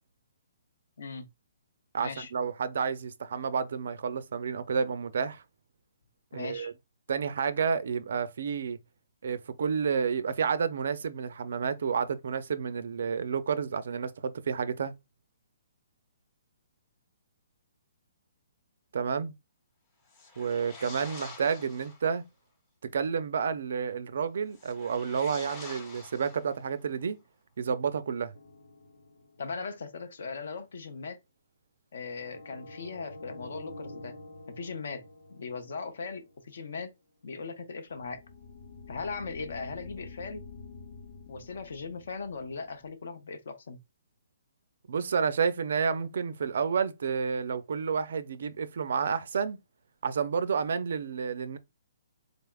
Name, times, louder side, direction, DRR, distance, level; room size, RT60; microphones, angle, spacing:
voice 1, 1.0-1.3 2.0-2.3 6.3-6.7 29.4-31.2 31.9-34.2 34.5-36.9 37.2-38.2 38.9-40.4 41.3-43.8, left 4 dB, 55° left, 0.6 m, -39 dB
voice 2, 1.9-5.4 6.3-6.7 7.1-8.8 9.2-14.9 18.9-19.3 20.4-22.2 22.9-27.2 27.6-28.3 44.9-49.6 50.0-51.6, right 6 dB, 50° right, 0.4 m, -30 dB
sound 1, 20.1-22.1 24.5-26.8, left 3 dB, 15° left, 0.6 m, -47 dB
sound 2, 28.3-29.8 32.0-36.5 37.9-42.9, left 3 dB, 70° left, 1.0 m, -48 dB
3.9 x 3.4 x 2.3 m
hypercardioid pair, 180°, 0 cm